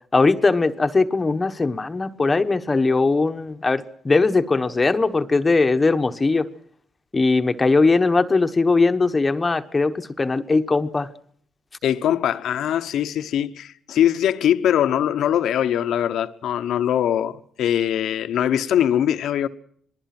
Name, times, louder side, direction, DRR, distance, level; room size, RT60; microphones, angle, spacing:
voice 1, 0.1-6.5 7.1-11.1, left 3 dB, 25° left, 1.1 m, -20 dB
voice 2, 11.8-19.5, left 10 dB, 75° left, 1.1 m, -22 dB
27.0 x 20.0 x 6.0 m
cardioid pair, 90°, 0 cm